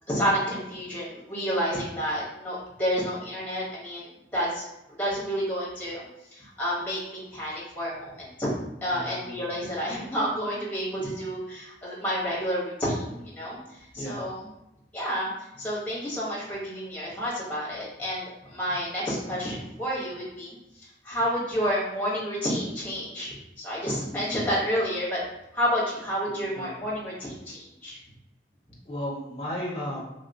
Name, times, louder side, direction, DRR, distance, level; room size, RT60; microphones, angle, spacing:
voice 1, 0.1-4.6 5.0-8.5 8.8-14.4 14.9-20.6 20.8-25.2 25.5-28.0, equal, 10° left, -6 dB, 0.9 m, -30 dB
voice 2, 8.9-9.5 13.9-14.2 26.3-26.7 28.8-30.0, equal, 30° left, -3 dB, 0.6 m, -35 dB
3.1 x 2.8 x 2.6 m, 0.90 s
head